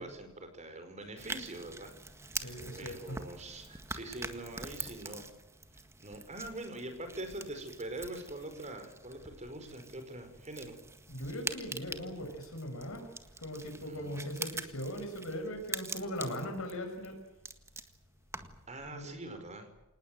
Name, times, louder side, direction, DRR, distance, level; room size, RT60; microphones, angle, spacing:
voice 1, 0.0-1.9 2.2-5.3 6.0-10.7 13.8-14.3 18.7-19.7, right 1 dB, 30° right, 7 dB, 5.1 m, -44 dB
sound 1, 1.2-18.7, right 3 dB, 15° right, 1.7 m, -45 dB
voice 2, 2.4-3.2 11.1-13.1 13.4-17.2 18.9-19.1, equal, 65° left, 5 dB, 6.0 m, -39 dB
26.5 x 19.5 x 7.8 m, 0.97 s
head